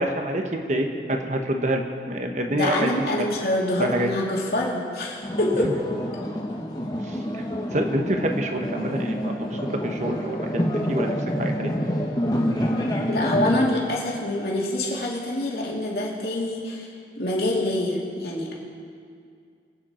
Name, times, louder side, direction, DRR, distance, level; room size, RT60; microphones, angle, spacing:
voice 1, 0.0-3.3 3.8-4.1 5.6-5.7 7.0-7.4 7.7-11.7, right 1 dB, 40° right, 4 dB, 1.2 m, -27 dB
voice 2, 2.5-5.7 13.1-16.9 17.2-18.5, left 1 dB, 60° left, -4 dB, 2.7 m, -25 dB
sound 1, 5.2-13.6, equal, 25° left, 1.3 m, -27 dB
24.0 x 9.0 x 4.4 m, 2.2 s
head